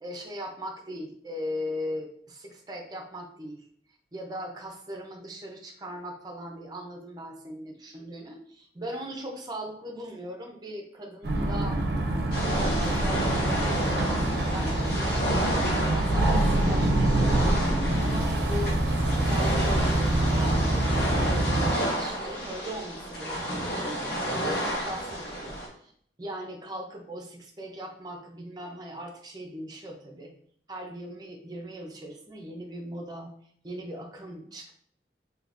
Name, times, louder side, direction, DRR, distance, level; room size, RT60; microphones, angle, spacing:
voice 1, 0.0-3.6 4.1-11.8 12.3-17.7 18.0-18.8 19.0-21.0 21.3-25.9 26.2-30.3 30.7-33.3 33.6-34.7, equal, 25° right, 1 dB, 0.5 m, -39 dB
sound 1, 11.2-21.7, right 1 dB, 70° right, 0.5 m, -26 dB
sound 2, 12.3-25.7, equal, 65° left, 1.1 m, -30 dB
3.6 x 2.7 x 2.5 m, 0.62 s
head